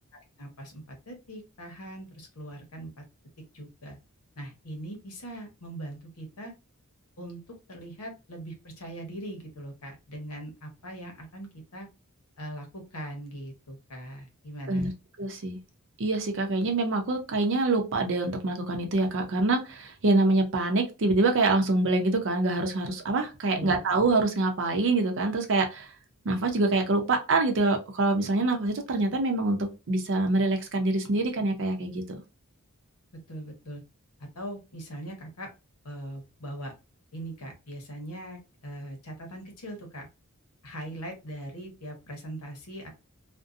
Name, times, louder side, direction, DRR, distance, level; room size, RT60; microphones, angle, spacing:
voice 1, 0.4-3.0 3.5-4.0 4.4-6.5 7.2-11.9 12.4-14.9 23.5-23.8 33.1-33.8 34.2-35.5 35.8-36.7 37.1-40.1 40.6-42.9, right 1 dB, 80° left, 4 dB, 0.9 m, -41 dB
voice 2, 15.2-15.6 16.0-25.9 26.2-32.0, right 2 dB, 60° right, 4 dB, 0.6 m, -25 dB
2.6 x 2.1 x 2.4 m, 0.28 s
head